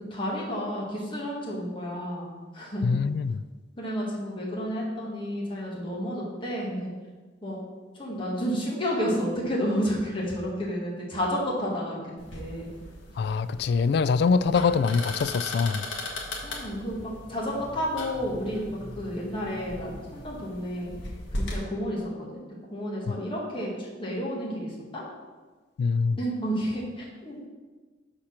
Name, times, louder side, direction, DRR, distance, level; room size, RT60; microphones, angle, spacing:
voice 1, 0.1-2.9 3.8-6.9 7.4-7.6 8.0-12.0 12.3-12.7 16.4-20.9 21.4-22.0 22.7-25.0 26.2-27.5, equal, 25° left, -4 dB, 1.7 m, -31 dB
voice 2, 2.8-3.4 13.2-15.8 23.1-23.2 25.8-26.2, left 5 dB, 60° left, 14 dB, 0.3 m, -24 dB
sound 1, 12.2-21.6, left 1 dB, 80° left, 1.4 m, -38 dB
6.5 x 4.3 x 5.8 m, 1.3 s
head